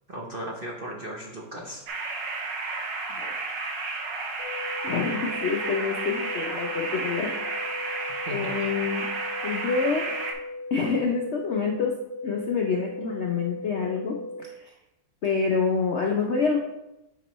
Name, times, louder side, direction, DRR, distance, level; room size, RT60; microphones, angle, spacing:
voice 1, 0.1-1.8 8.3-8.7, right 1 dB, 45° right, -1 dB, 0.8 m, -36 dB
sound 1, 1.9-10.3, right 3 dB, 80° right, 1.6 m, -32 dB
sound 2, 4.4-14.4, left 2 dB, 5° right, 1.5 m, -38 dB
voice 2, 4.8-7.3 7.6-7.9 8.3-9.1 9.4-10.2 10.7-12.0 12.2-14.7 15.2-16.6, left 5 dB, 60° left, 1 dB, 0.7 m, -27 dB
8.9 x 5.3 x 3.0 m, 0.92 s
omnidirectional pair, 1.9 m